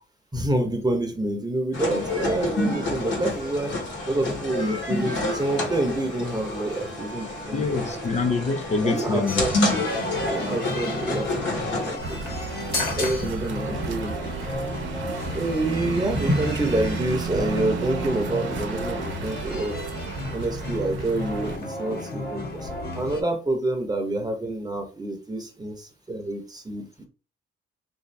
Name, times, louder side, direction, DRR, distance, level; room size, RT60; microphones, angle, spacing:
voice 1, 0.3-3.7 4.1-7.8 8.8-9.5 10.2-12.2 13.0-14.4 15.3-19.8 20.3-27.1, right 1 dB, 20° right, 0.9 m, -27 dB
sound 1, 1.7-12.0, left 2 dB, 70° left, 1.3 m, -28 dB
voice 2, 7.5-9.5 13.2-13.4, left 4 dB, 35° left, 0.5 m, -25 dB
sound 2, 9.3-23.2, left 2 dB, 50° left, 1.4 m, -33 dB
driving car loop, 12.0-21.6, right 5 dB, 70° right, 0.8 m, -33 dB
3.5 x 2.7 x 3.3 m
cardioid pair, 90°, 20 cm